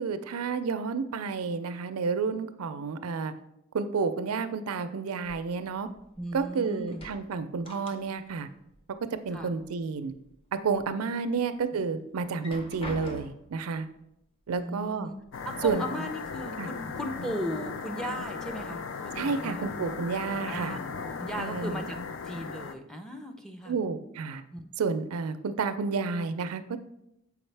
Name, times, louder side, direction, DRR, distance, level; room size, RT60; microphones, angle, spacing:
voice 1, 0.0-3.3 3.7-5.9 6.3-8.5 9.2-10.1 10.5-13.9 14.5-15.1 15.6-16.1 16.6-16.7 19.1-20.8 21.4-21.8 23.7-24.4 24.8-26.6, right 5 dB, 90° right, 11 dB, 0.4 m, -30 dB
sound 1, 5.2-6.5 6.8-8.4 8.7-9.7 10.1-10.9 11.4-11.5 12.2-13.6 14.6-14.7 15.1-15.7, equal, 25° left, 0.8 m, -45 dB
voice 2, 6.2-7.0 9.3-9.5 11.2-11.4 14.5-15.2 15.5-18.8 19.2-19.7 20.5-20.8 21.2-22.0 22.3-23.8 24.5-24.6, equal, 5° left, 3 dB, 0.5 m, -36 dB
sound 2, 15.3-22.7, left 5 dB, 60° left, 0.4 m, -37 dB
7.0 x 4.8 x 3.3 m, 0.80 s
head